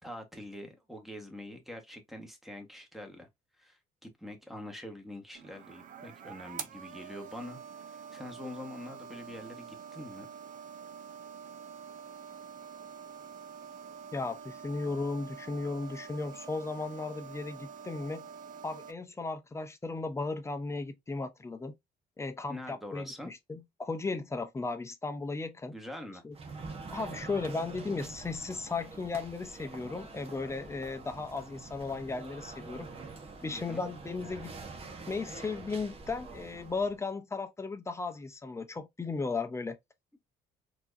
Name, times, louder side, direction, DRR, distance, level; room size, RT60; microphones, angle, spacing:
voice 1, 0.0-3.3 3.6-7.6 7.9-10.3 22.5-23.3 25.7-26.2 33.5-33.8, left 1 dB, ahead, 1.3 m, -44 dB
sound 1, 5.3-18.9, right 7 dB, 50° right, 0.7 m, -46 dB
voice 2, 14.1-18.2 18.6-21.7 22.2-25.7 26.2-26.4 26.9-32.9 33.4-34.5 35.1-39.8, left 3 dB, 15° left, 0.7 m, -36 dB
sound 2, 26.3-37.0, right 3 dB, 35° right, 1.1 m, -46 dB
4.4 x 3.0 x 2.6 m
cardioid pair, 110°, 17 cm